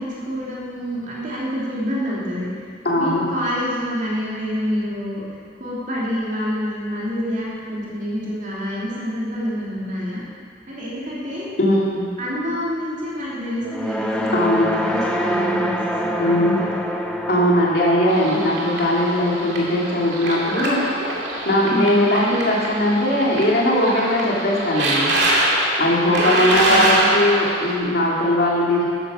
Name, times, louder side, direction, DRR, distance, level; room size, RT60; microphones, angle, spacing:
voice 1, 0.0-2.5 3.0-5.2 5.6-10.2 10.7-11.5 12.2-16.7 21.6-22.0 26.2-27.2, equal, 40° right, -7 dB, 3.0 m, -27 dB
voice 2, 2.8-3.2 11.6-12.0 14.3-14.7 16.2-16.5 17.3-20.9 21.4-25.1 25.8-28.8, left 1 dB, 55° left, -4 dB, 2.7 m, -19 dB
sound 1, 13.6-22.0, equal, 5° left, 0.8 m, -27 dB
sound 2, 18.1-27.8, right 1 dB, 65° right, 2.4 m, -24 dB
11.5 x 10.0 x 6.3 m, 2.2 s
head